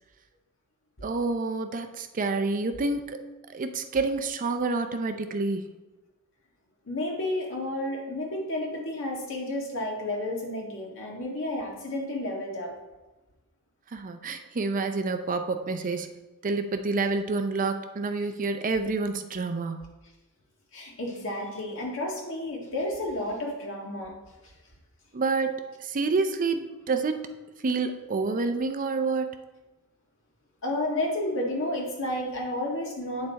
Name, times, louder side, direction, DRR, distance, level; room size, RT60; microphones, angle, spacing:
voice 1, 1.0-3.2 3.5-5.7 13.9-16.1 16.4-19.9 25.1-27.3 27.6-29.4, right 3 dB, 35° right, 7 dB, 0.5 m, -28 dB
voice 2, 6.9-12.7 20.7-24.1 24.4-24.5 30.6-33.3, left 1 dB, 60° left, -1 dB, 1.7 m, -31 dB
8.9 x 5.5 x 4.0 m, 1.1 s
head